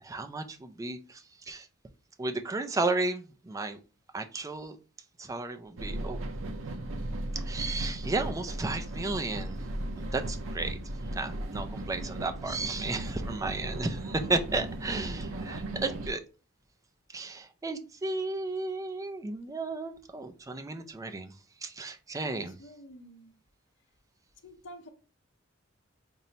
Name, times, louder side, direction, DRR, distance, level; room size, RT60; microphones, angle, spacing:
voice 1, 0.0-1.7 2.2-3.8 4.1-4.8 5.2-6.2 7.3-9.6 10.0-10.8 11.1-16.2 17.1-21.3 21.6-22.5, right 3 dB, 15° right, 0.3 m, -33 dB
sound 1, 5.8-16.1, right 1 dB, 80° right, 0.6 m, -36 dB
voice 2, 22.2-23.3 24.4-24.9, equal, 65° left, 0.7 m, -49 dB
5.2 x 2.1 x 2.8 m
head